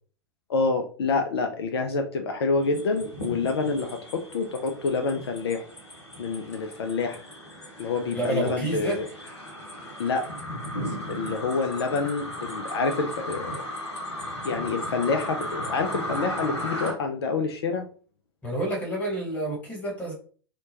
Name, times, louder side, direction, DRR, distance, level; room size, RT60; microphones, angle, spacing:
voice 1, 0.5-5.7 6.2-7.2 7.8-9.1 10.0-10.3 11.1-13.7 14.4-17.9, left 4 dB, 65° left, 6 dB, 0.4 m, -27 dB
sound 1, 2.6-16.9, equal, 85° left, 0.8 m, -36 dB
voice 2, 8.1-9.0 18.4-20.1, right 1 dB, 10° left, -2 dB, 1.2 m, -29 dB
2.8 x 2.1 x 2.8 m, 0.41 s
figure-of-eight pair, 95°, 14 cm